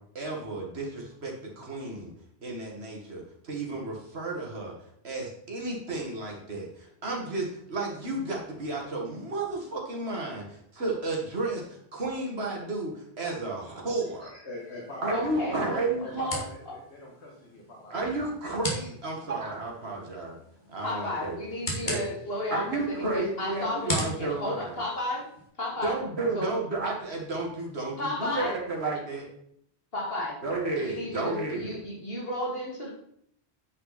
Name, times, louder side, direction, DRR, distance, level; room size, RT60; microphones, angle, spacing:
voice 1, 0.1-2.1 2.4-4.7 5.0-14.3 15.0-16.4 17.9-20.4 20.7-21.4 21.9-22.0 22.5-24.8 25.8-29.3 30.4-31.8, right 2 dB, 75° right, -1 dB, 2.2 m, -32 dB
voice 2, 14.0-15.3 15.7-17.9 20.0-20.2, left 1 dB, 85° left, -3 dB, 1.9 m, -43 dB
sound 1, 14.5-25.5, left 1 dB, 45° left, 2.0 m, -39 dB
voice 3, 15.1-15.6 16.2-16.4 16.7-16.8 20.8-25.3 25.6-26.0 26.3-26.5 28.0-28.5 29.9-30.4 30.7-32.9, left 1 dB, 60° left, -2 dB, 2.6 m, -33 dB
9.5 x 5.6 x 4.2 m, 0.69 s
omnidirectional pair, 1.1 m